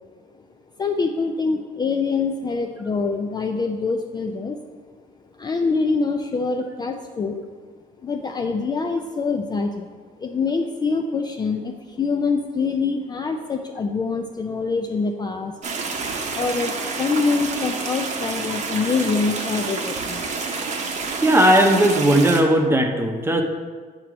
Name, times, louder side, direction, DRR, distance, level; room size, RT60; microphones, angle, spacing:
voice 1, 0.8-4.6 5.4-7.4 8.0-9.9 10.2-15.5 16.0-20.3, left 4 dB, 25° left, 4 dB, 0.4 m, -25 dB
sound 1, 15.6-22.4, right 4 dB, 45° right, 0.9 m, -28 dB
voice 2, 21.2-23.4, right 1 dB, 15° right, 3 dB, 0.8 m, -17 dB
7.6 x 2.9 x 6.0 m, 1.5 s
cardioid pair, 110°, 17 cm